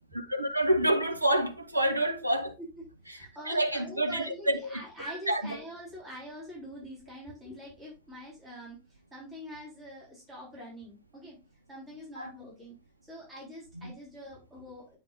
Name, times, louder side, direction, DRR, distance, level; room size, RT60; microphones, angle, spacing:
voice 1, 0.1-2.5 3.4-5.6 12.2-12.3 13.7-13.9, right 1 dB, 85° right, 1.0 m, -28 dB
voice 2, 3.0-11.4 11.7-12.7 13.1-15.0, equal, 20° right, 3.7 m, -45 dB
8.9 x 5.5 x 2.4 m
figure-of-eight pair, 90°, 0 cm